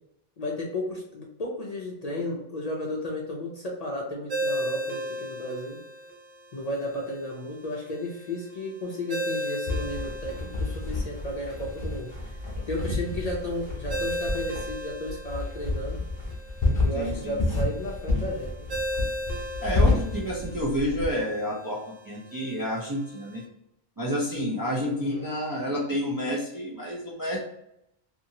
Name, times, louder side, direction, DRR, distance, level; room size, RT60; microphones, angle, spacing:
voice 1, 0.4-5.8 6.5-12.4 12.7-16.0 16.8-18.7 24.9-25.3, left 1 dB, 50° left, -2 dB, 0.5 m, -33 dB
Ringtone, 4.3-23.4, equal, 90° right, 1.0 m, -37 dB
sound 1, 9.7-21.1, left 2 dB, 30° left, 0.9 m, -29 dB
voice 2, 16.9-17.4 19.6-21.8 22.0-23.4 24.0-27.4, equal, 30° right, -4 dB, 0.4 m, -29 dB
2.8 x 2.5 x 2.7 m, 0.79 s
omnidirectional pair, 1.0 m